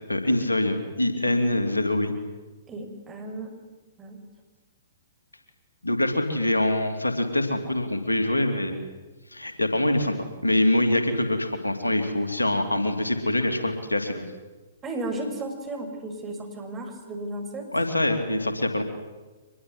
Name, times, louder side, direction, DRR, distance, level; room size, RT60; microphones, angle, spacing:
voice 1, 0.1-2.1 5.8-8.8 9.3-14.2 17.7-18.8, left 1 dB, 90° left, 7 dB, 2.9 m, -24 dB
voice 2, 2.7-3.5 4.0-4.2 14.8-17.6, right 2 dB, 20° right, 4 dB, 6.0 m, -34 dB
25.0 x 21.0 x 9.7 m, 1.3 s
figure-of-eight pair, 120°, 0 cm